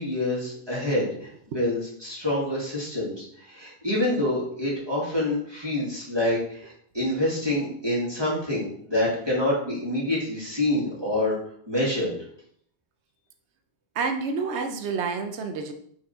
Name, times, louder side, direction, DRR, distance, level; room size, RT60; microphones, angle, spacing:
voice 1, 0.0-11.4 11.7-12.1, left 1 dB, 20° right, -6 dB, 2.4 m, -27 dB
voice 2, 13.9-15.7, right 4 dB, 80° right, 7 dB, 1.0 m, -28 dB
6.0 x 5.0 x 4.3 m, 0.65 s
omnidirectional pair, 1.1 m